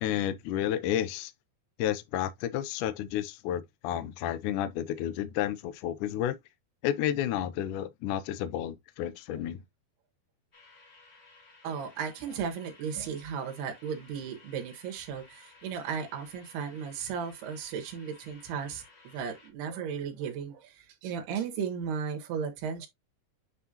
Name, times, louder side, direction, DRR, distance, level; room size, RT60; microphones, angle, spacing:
voice 1, 0.0-1.3 1.8-6.4 6.8-9.6, left 11 dB, 90° left, 1.7 m, -31 dB
sound 1, 10.5-19.5, left 3 dB, 70° left, 0.6 m, -57 dB
voice 2, 11.6-22.9, right 7 dB, 85° right, 3.5 m, -35 dB
9.2 x 3.8 x 2.8 m
omnidirectional pair, 4.5 m